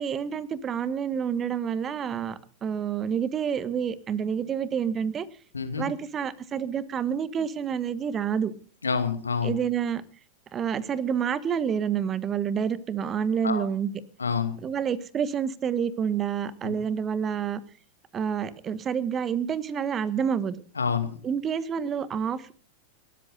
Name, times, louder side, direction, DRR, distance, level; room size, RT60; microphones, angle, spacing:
voice 1, 0.0-5.3 5.8-8.5 9.4-10.0 10.5-13.9 14.6-17.6 18.1-20.6 21.2-22.5, right 7 dB, 25° right, 16 dB, 1.4 m, -28 dB
voice 2, 5.5-5.9 8.8-9.5 13.4-13.7 14.2-14.6 16.6-16.7 20.7-21.2, left 5 dB, 75° left, 9 dB, 2.5 m, -27 dB
29.0 x 13.5 x 2.6 m, 0.43 s
figure-of-eight pair, 90°, 0 cm